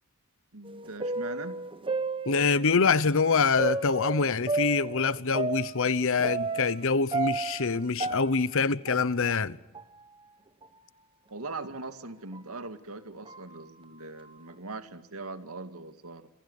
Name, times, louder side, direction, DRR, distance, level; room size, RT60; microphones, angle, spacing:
voice 1, 0.5-1.6 11.3-16.3, right 3 dB, 75° right, 2.1 m, -41 dB
sound 1, 0.6-2.8 3.6-6.8 7.1-9.5 9.7-9.8 10.6-10.7 11.5-11.7 12.3-12.4 13.3-13.6, right 3 dB, 25° right, 1.3 m, -33 dB
voice 2, 2.3-9.6, left 4 dB, 65° left, 1.0 m, -25 dB
28.0 x 27.0 x 5.5 m
head